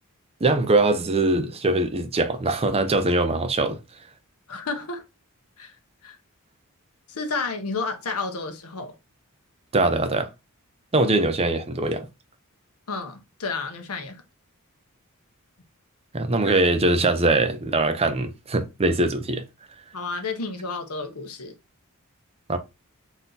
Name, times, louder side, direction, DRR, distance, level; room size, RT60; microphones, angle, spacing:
voice 1, 0.4-3.8 9.7-10.3 10.9-12.1 16.1-19.4 22.5-22.6, right 2 dB, 25° right, 0.5 m, -22 dB
voice 2, 4.5-5.0 5.6-5.7 6.0-6.2 7.1-8.9 12.9-14.2 19.9-21.5, left 4 dB, 85° left, 0.9 m, -31 dB
4.0 x 2.7 x 3.9 m
head